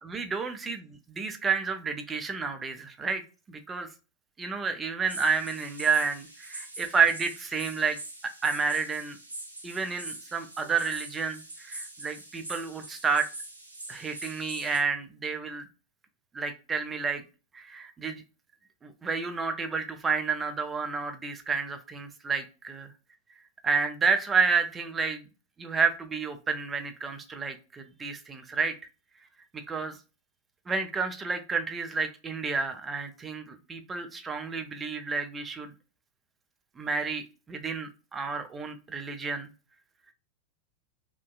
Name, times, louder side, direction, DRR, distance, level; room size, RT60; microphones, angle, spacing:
voice 1, 0.0-3.2 3.5-3.9 4.4-8.0 8.4-9.2 9.6-13.3 13.9-15.6 16.3-17.2 17.5-18.2 18.8-22.9 23.6-25.2 25.6-28.8 29.5-30.0 30.7-35.7 36.8-39.5, right 5 dB, 15° right, 6 dB, 0.4 m, -30 dB
sound 1, 5.1-14.8, right 2 dB, 80° right, 0.6 m, -43 dB
2.5 x 2.2 x 2.3 m, 0.32 s
figure-of-eight pair, 90°, 0 cm